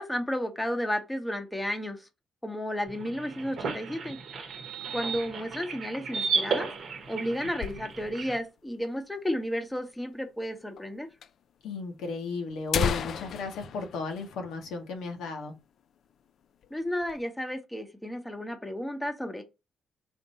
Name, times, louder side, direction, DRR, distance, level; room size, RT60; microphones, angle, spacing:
voice 1, 0.0-2.1 2.4-4.2 4.9-6.7 7.1-11.1 16.7-19.4, equal, 5° left, 0.8 m, -32 dB
sound 1, 2.9-8.4, right 5 dB, 60° right, 0.9 m, -34 dB
sound 2, 6.5-8.3 8.7-8.8 9.0-9.1 9.8-9.9 10.8-10.9 11.2-11.3 12.1-12.2 12.5-15.1 15.4-15.6 16.0-16.2 16.6-17.2, left 7 dB, 65° left, 0.3 m, -34 dB
voice 2, 11.6-15.5, left 3 dB, 85° left, 0.9 m, -35 dB
3.6 x 2.6 x 4.0 m
cardioid pair, 90°, 0 cm